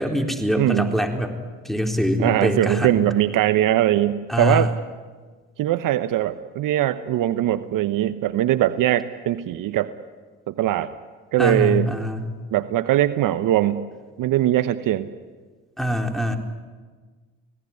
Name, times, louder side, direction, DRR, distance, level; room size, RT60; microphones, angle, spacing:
voice 1, 0.0-1.4 1.6-3.1 4.3-4.7 11.4-12.3 15.8-16.4, left 1 dB, ahead, 3 dB, 4.0 m, -24 dB
voice 2, 0.6-0.9 2.2-4.7 5.6-9.9 10.5-10.9 11.3-11.9 12.5-13.9 14.2-15.1, right 13 dB, 60° right, 12 dB, 1.1 m, -21 dB
26.5 x 18.0 x 9.9 m, 1.4 s
hypercardioid pair, 65°, 37 cm